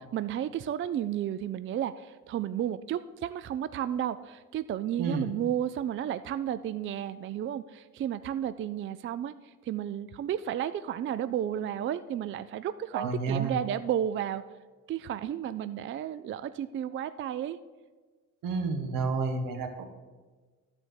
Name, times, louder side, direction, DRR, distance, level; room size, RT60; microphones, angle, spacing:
voice 1, 0.1-14.4 14.9-17.6, right 10 dB, 40° right, 13 dB, 0.4 m, -32 dB
voice 2, 12.9-13.5 18.4-19.9, right 4 dB, 85° right, 6 dB, 1.6 m, -30 dB
12.5 x 4.5 x 8.1 m, 1.3 s
cardioid pair, 115°, 32 cm